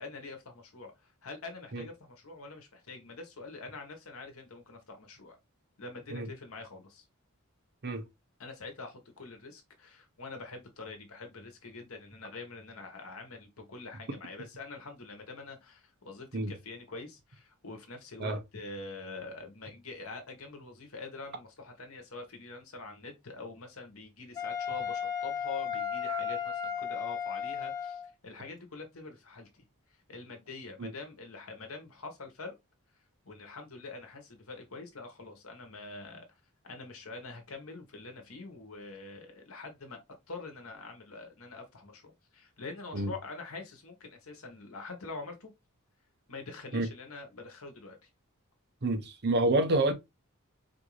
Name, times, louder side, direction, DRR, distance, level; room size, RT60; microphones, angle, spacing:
voice 1, 0.0-5.4 5.8-7.1 8.4-29.6 30.1-32.5 33.2-36.4 36.6-40.0 40.3-45.5 46.3-48.1, left 3 dB, 70° left, 1.2 m, -45 dB
Wind instrument woodwind instrument, 24.4-28.1, left 7 dB, 15° left, 0.7 m, -34 dB
voice 2, 48.8-49.9, right 2 dB, 50° right, 0.8 m, -28 dB
4.4 x 2.7 x 3.1 m
head